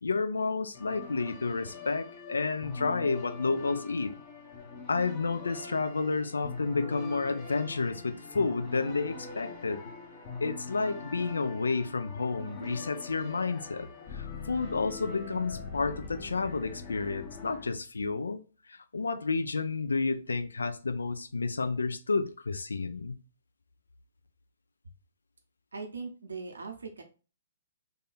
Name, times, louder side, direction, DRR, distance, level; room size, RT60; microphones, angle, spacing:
voice 1, 0.0-4.2 4.9-9.9 10.4-18.4 18.7-23.2, left 4 dB, 80° left, 0.4 m, -31 dB
sound 1, 0.7-17.7, left 4 dB, 35° left, 0.9 m, -43 dB
voice 2, 25.7-27.0, right 4 dB, 80° right, 0.7 m, -40 dB
3.3 x 2.3 x 3.9 m
figure-of-eight pair, 125°, 0 cm